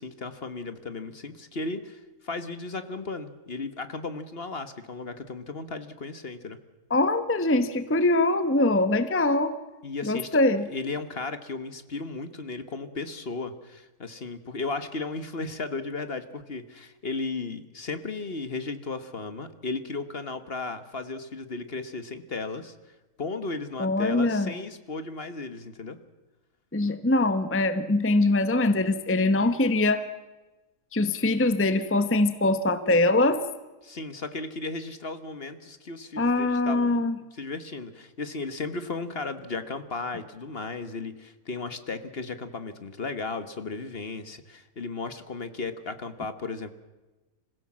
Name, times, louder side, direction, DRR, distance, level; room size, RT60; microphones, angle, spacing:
voice 1, 0.0-6.6 9.8-10.4 10.7-22.7 23.2-26.0 33.8-37.0 37.3-46.7, left 3 dB, 45° left, 11 dB, 1.5 m, -35 dB
voice 2, 6.9-9.5 10.0-10.7 23.8-24.5 26.7-30.0 30.9-33.4 36.2-37.2, left 2 dB, 10° left, 11 dB, 0.9 m, -23 dB
26.5 x 16.0 x 7.4 m, 1.2 s
omnidirectional pair, 1.5 m